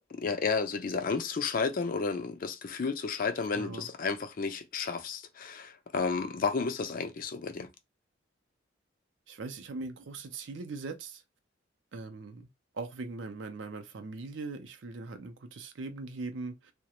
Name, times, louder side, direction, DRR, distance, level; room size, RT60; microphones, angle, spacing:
voice 1, 0.1-7.7, left 5 dB, 45° left, 0.4 m, -32 dB
voice 2, 3.5-3.9 9.3-11.2 11.9-12.5 12.7-16.7, right 3 dB, 70° right, 0.5 m, -40 dB
2.3 x 2.1 x 2.9 m
head